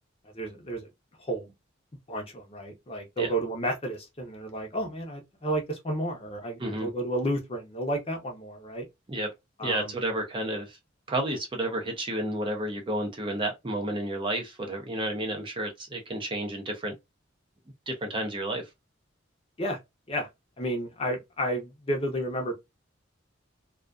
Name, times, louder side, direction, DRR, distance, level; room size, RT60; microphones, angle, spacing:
voice 1, 0.3-0.9 1.2-1.5 2.1-8.9 9.6-10.0 19.6-19.8 20.1-20.3 20.6-22.5, right 1 dB, 30° left, 0.7 m, -31 dB
voice 2, 9.6-10.8 11.1-16.9 17.9-18.6, right 1 dB, 25° right, 0.6 m, -31 dB
2.4 x 2.2 x 2.4 m
head